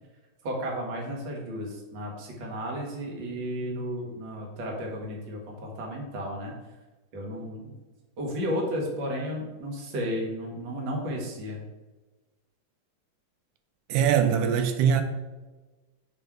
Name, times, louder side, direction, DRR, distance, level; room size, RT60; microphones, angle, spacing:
voice 1, 0.4-6.5 7.1-7.7 8.2-11.6, equal, 45° right, 1.7 m, -33 dB
voice 2, 13.9-15.0, right 8 dB, 85° right, 2.0 m, -22 dB
7.4 x 3.5 x 4.6 m
omnidirectional pair, 3.6 m